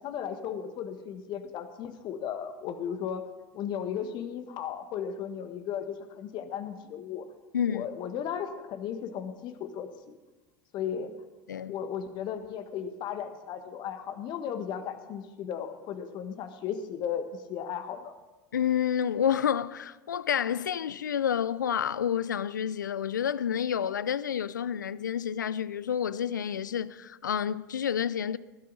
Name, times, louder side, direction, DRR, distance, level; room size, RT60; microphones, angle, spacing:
voice 1, 0.0-3.2 3.5-7.3 7.7-10.2 10.7-11.1 11.7-18.1, left 8 dB, 50° left, 1.6 m, -35 dB
voice 2, 7.5-7.9 11.5-11.7 18.5-28.4, left 8 dB, 85° left, 0.4 m, -29 dB
20.0 x 12.0 x 4.1 m
hypercardioid pair, 75°, 10 cm